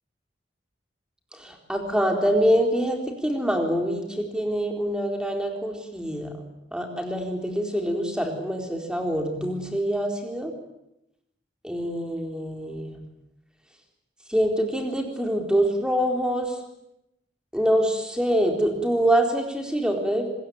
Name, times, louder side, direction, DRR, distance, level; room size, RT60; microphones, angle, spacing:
voice 1, 1.4-6.3 6.7-10.5 11.6-13.0 14.3-16.6 17.5-20.3, equal, 5° right, 3 dB, 4.0 m, -25 dB
25.0 x 21.5 x 9.4 m, 0.85 s
head